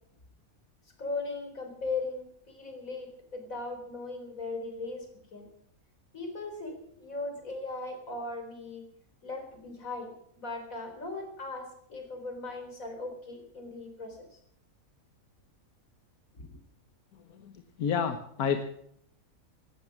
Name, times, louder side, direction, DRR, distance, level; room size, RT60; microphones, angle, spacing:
voice 1, 1.0-5.1 5.3-5.5 6.1-8.9 9.2-10.1 10.4-14.2 16.3-16.4, left 3 dB, 65° left, 5 dB, 4.5 m, -38 dB
voice 2, 17.1-18.6, left 7 dB, 90° left, 8 dB, 1.6 m, -31 dB
17.0 x 13.0 x 6.0 m, 0.70 s
omnidirectional pair, 1.5 m